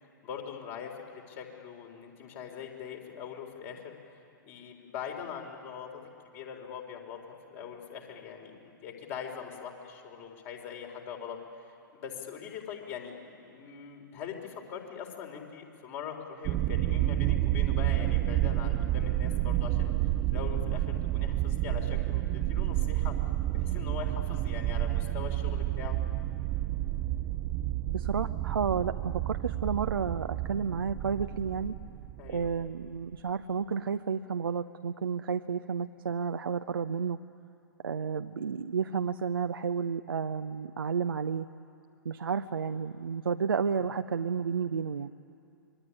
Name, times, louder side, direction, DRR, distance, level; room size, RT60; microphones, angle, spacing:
voice 1, 0.2-4.2 4.4-5.9 6.2-7.2 7.5-11.4 11.7-19.9 20.3-23.2 23.5-26.0 32.2-32.5 43.7-43.9, left 7 dB, 40° left, 2 dB, 4.1 m, -42 dB
sound 1, 16.4-32.9, right 14 dB, 30° right, 0.7 m, -30 dB
voice 2, 27.9-31.8 32.3-37.2 37.8-41.5 42.0-45.1, right 6 dB, 75° right, 8 dB, 0.8 m, -31 dB
26.0 x 21.5 x 10.0 m, 2.6 s
figure-of-eight pair, 110°, 12 cm